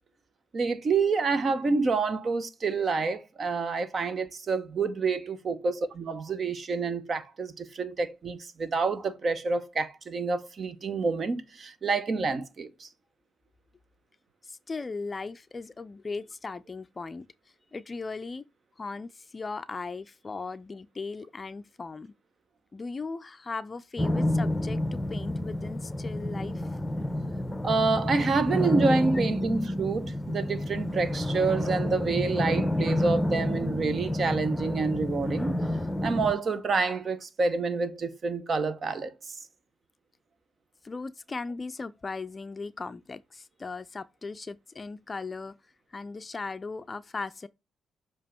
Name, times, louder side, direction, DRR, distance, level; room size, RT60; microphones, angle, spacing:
voice 1, 0.5-12.9 27.6-35.6 36.0-39.4, right 4 dB, 45° right, 1.0 m, -28 dB
voice 2, 14.4-17.3 17.7-18.4 18.8-22.1 22.7-26.7 29.4-29.5 40.8-45.6 45.9-47.5, left 4 dB, 30° left, 0.5 m, -38 dB
sound 1, 24.0-36.3, left 1 dB, 10° left, 0.9 m, -29 dB
7.3 x 3.0 x 4.4 m
cardioid pair, 90°, 0 cm